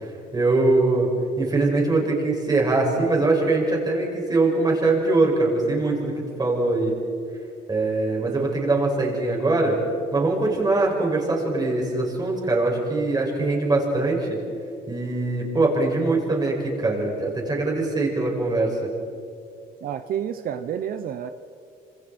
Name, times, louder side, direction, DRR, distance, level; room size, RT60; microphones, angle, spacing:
voice 1, 0.3-6.1 6.4-6.9 7.7-9.8 10.1-14.4 14.9-18.7, right 2 dB, 25° right, -1 dB, 6.2 m, -22 dB
voice 2, 19.8-21.3, right 9 dB, 60° right, 9 dB, 0.9 m, -29 dB
27.0 x 26.5 x 4.5 m, 2.5 s
cardioid pair, 110°, 17 cm